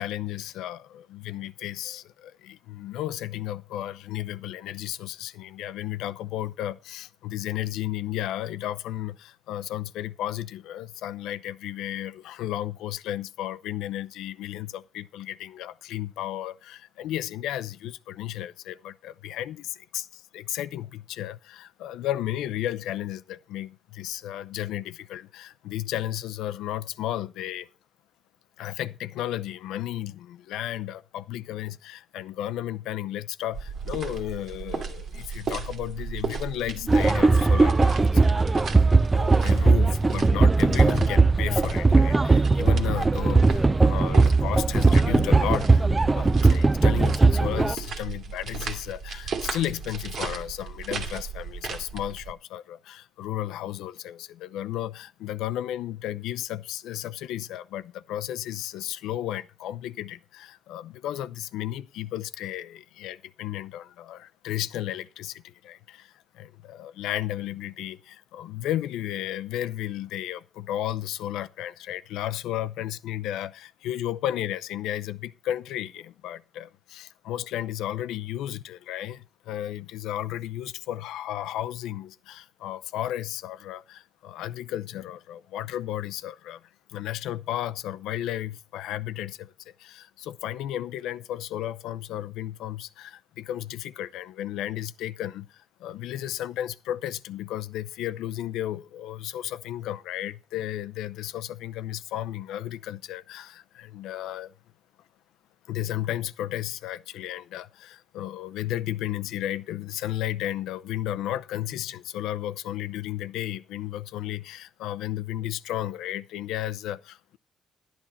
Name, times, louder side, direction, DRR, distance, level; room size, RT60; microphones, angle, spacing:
voice 1, 0.0-27.7 28.6-38.6 39.1-45.9 46.1-104.5 105.7-117.4, left 12 dB, 90° left, 0.6 m, -33 dB
sound 1, 33.5-52.3, right 5 dB, 65° right, 2.2 m, -35 dB
sound 2, 36.9-47.7, right 3 dB, 20° right, 0.6 m, -19 dB
11.5 x 11.0 x 4.2 m
cardioid pair, 90°, 0 cm